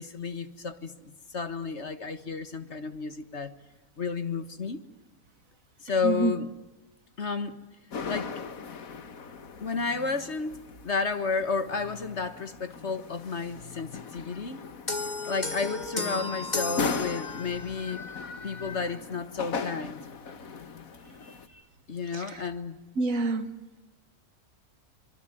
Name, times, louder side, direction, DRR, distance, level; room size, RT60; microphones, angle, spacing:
voice 1, 0.0-3.5 4.0-4.8 5.8-6.5 7.2-7.6 8.1-8.3 9.6-14.6 15.3-18.0 18.4-20.0 21.2-21.6 21.9-22.8, left 4 dB, 45° left, 11 dB, 1.7 m, -32 dB
sound 1, 7.9-21.5, left 4 dB, 65° left, 1.8 m, -38 dB
sound 2, 14.9-17.8, left 3 dB, 30° left, 1.9 m, -33 dB
voice 2, 23.0-23.6, right 3 dB, 60° right, 11 dB, 1.9 m, -27 dB
26.0 x 24.0 x 9.1 m, 1.0 s
omnidirectional pair, 1.6 m